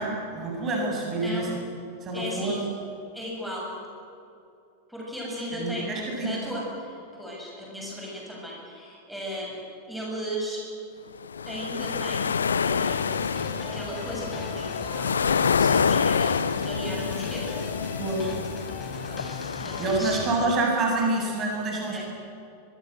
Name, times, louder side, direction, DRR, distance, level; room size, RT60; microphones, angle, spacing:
voice 1, 0.0-1.5 2.0-2.6 5.6-6.4 18.0-18.3 19.8-22.0, right 2 dB, 30° right, -1 dB, 7.5 m, -27 dB
voice 2, 1.2-1.5 2.1-2.6 3.1-3.8 4.9-9.5 9.8-10.6 11.5-13.3 13.6-17.6 19.1-19.2 19.6-20.2 21.9-22.0, equal, ahead, -4 dB, 7.3 m, -36 dB
sound 1, 11.2-20.5, left 6 dB, 70° left, 0.7 m, -27 dB
sound 2, 12.9-20.6, left 3 dB, 15° left, 3.5 m, -39 dB
24.0 x 23.5 x 8.0 m, 2.6 s
figure-of-eight pair, 90°, 0 cm